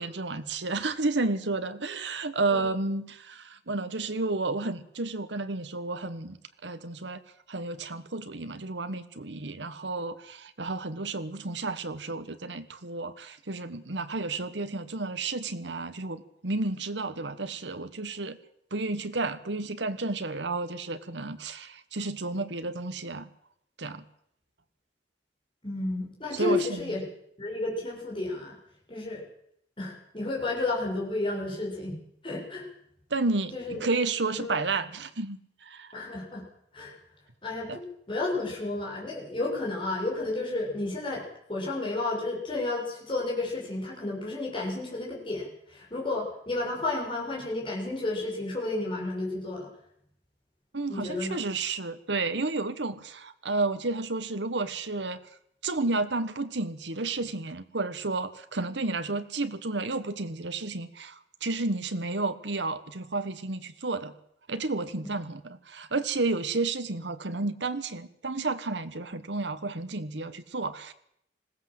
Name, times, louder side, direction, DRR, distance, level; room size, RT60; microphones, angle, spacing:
voice 1, 0.0-6.4 6.6-7.2 7.5-18.4 18.7-23.3 23.8-24.0 26.3-26.8 33.1-35.9 37.7-37.8 50.7-55.2 55.6-64.1 64.5-70.9, right 3 dB, 85° right, 11 dB, 1.4 m, -31 dB
voice 2, 25.6-27.0 27.4-28.6 28.9-29.2 29.8-32.0 32.2-32.7 33.5-33.8 34.3-34.5 35.9-36.4 36.7-37.0 37.4-49.7 50.9-51.4 65.0-65.1, left 2 dB, 30° left, -3 dB, 6.8 m, -32 dB
20.5 x 16.5 x 7.8 m, 0.73 s
head